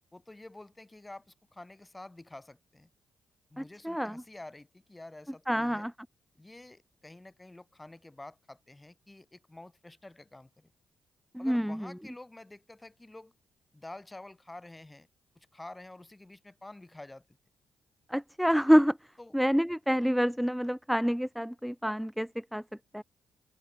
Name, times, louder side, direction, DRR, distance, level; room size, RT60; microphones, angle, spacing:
voice 1, 0.1-2.9 3.5-5.9 6.4-10.7 11.4-13.3 13.7-15.1 15.3-17.4 19.2-19.4, left 2 dB, 20° left, 4.7 m, -49 dB
voice 2, 3.6-4.2 5.5-5.9 11.3-11.9 18.1-19.0 19.3-22.6 22.9-23.0, equal, ahead, 0.3 m, -27 dB
open air
supercardioid pair, 50°, 0 cm